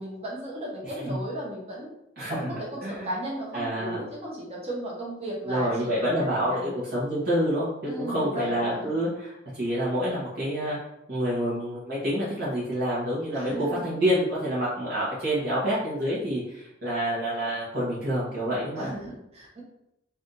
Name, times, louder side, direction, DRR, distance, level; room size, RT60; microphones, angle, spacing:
voice 1, 0.0-1.9 2.3-6.7 7.9-8.9 13.3-13.8 18.8-19.6, right 1 dB, 30° right, -3 dB, 1.1 m, -35 dB
voice 2, 2.2-2.5 2.8-3.1 3.5-4.0 5.4-7.7 8.0-10.8 11.1-18.9, equal, 50° right, -9 dB, 1.2 m, -27 dB
3.5 x 2.7 x 3.8 m, 0.83 s
head